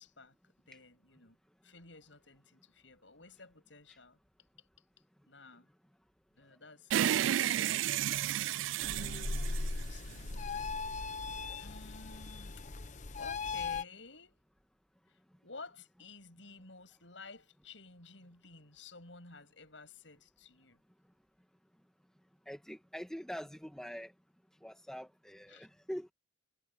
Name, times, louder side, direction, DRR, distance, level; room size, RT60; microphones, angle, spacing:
voice 1, 0.0-1.4 1.6-4.2 4.6-4.7 5.3-5.7 6.3-8.2 9.0-10.4 11.6-12.6 13.2-14.4 15.1-20.8 25.5-25.7, left 3 dB, 80° left, 7.7 m, -53 dB
sound 1, 6.9-10.4, right 11 dB, 85° right, 0.3 m, -32 dB
sound 2, 8.8-13.8, left 3 dB, 40° left, 0.8 m, -38 dB
voice 2, 22.5-24.1 24.6-26.1, equal, 5° left, 1.5 m, -44 dB
head